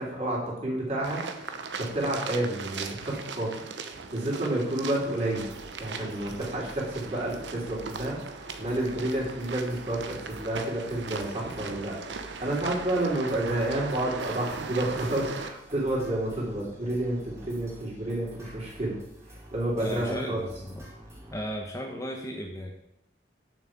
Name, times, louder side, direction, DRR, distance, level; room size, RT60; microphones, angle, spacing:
voice 1, 0.0-3.7 4.1-5.5 5.8-19.0 19.3-20.4, right 1 dB, 35° right, -4 dB, 3.6 m, -30 dB
sound 1, 1.0-15.5, right 4 dB, 75° right, 0.9 m, -38 dB
sound 2, 5.3-21.7, equal, 15° right, 2.2 m, -49 dB
voice 2, 19.8-20.9 21.3-22.7, equal, 15° left, 1 dB, 1.0 m, -35 dB
7.4 x 6.2 x 7.4 m, 0.81 s
head